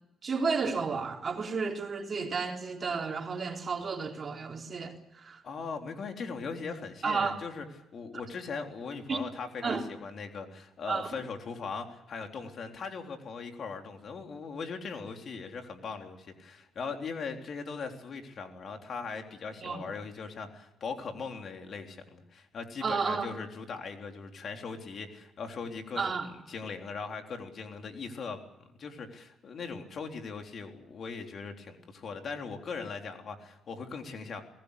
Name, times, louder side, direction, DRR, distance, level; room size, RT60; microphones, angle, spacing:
voice 1, 0.2-5.4 7.0-7.4 9.1-9.2 9.6-9.8 10.9-11.1 19.6-19.8 22.8-23.3 26.0-26.3, right 5 dB, 40° right, 2 dB, 3.8 m, -32 dB
voice 2, 5.4-7.7 7.9-26.2 26.5-34.4, left 5 dB, 55° left, 4 dB, 3.6 m, -39 dB
23.0 x 19.0 x 8.3 m, 0.90 s
cardioid pair, 90°, 0 cm